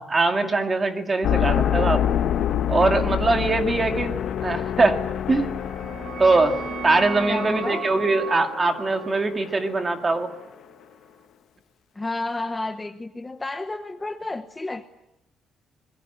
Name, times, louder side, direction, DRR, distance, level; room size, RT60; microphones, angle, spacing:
voice 1, 0.0-2.0 2.7-4.1 4.4-5.0 5.3-5.5 6.2-6.6 6.8-10.3, right 3 dB, 20° right, 6 dB, 2.2 m, -22 dB
sound 1, 1.2-10.3, left 10 dB, 55° left, 1.2 m, -27 dB
sound 2, 5.5-10.9, right 7 dB, 60° right, 1.8 m, -37 dB
voice 2, 7.3-7.9 11.9-14.8, left 2 dB, 10° left, 8 dB, 0.9 m, -31 dB
26.0 x 22.0 x 8.8 m, 0.86 s
cardioid pair, 175°, 0 cm